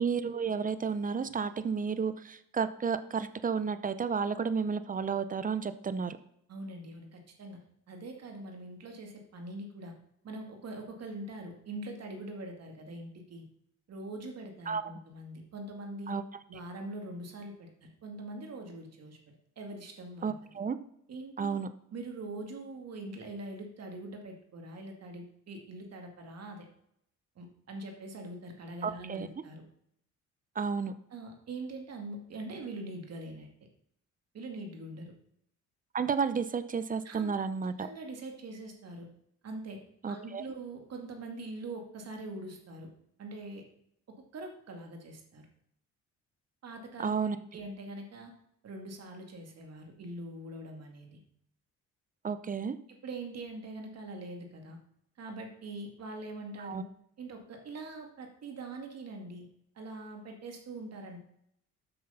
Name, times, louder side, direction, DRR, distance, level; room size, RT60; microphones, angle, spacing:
voice 1, 0.0-6.2 14.7-14.8 16.1-16.2 20.2-20.8 21.4-21.7 28.8-29.3 30.6-30.9 35.9-37.9 40.0-40.4 47.0-47.4 52.2-52.8 56.6-56.8, right 6 dB, 25° right, 12 dB, 0.7 m, -32 dB
voice 2, 6.5-7.6 7.9-9.9 10.2-13.5 13.9-16.1 16.5-20.3 21.1-21.6 21.9-26.7 27.4-29.6 31.1-33.5 34.3-35.1 37.0-37.3 37.8-39.1 39.4-39.8 40.1-42.9 43.2-43.6 44.1-45.4 46.6-47.1 47.5-48.3 48.6-51.2 53.0-54.8 55.2-56.8 57.2-59.5 59.8-61.2, right 2 dB, 55° right, 3 dB, 2.2 m, -43 dB
7.9 x 6.3 x 5.6 m, 0.73 s
cardioid pair, 90°, 30 cm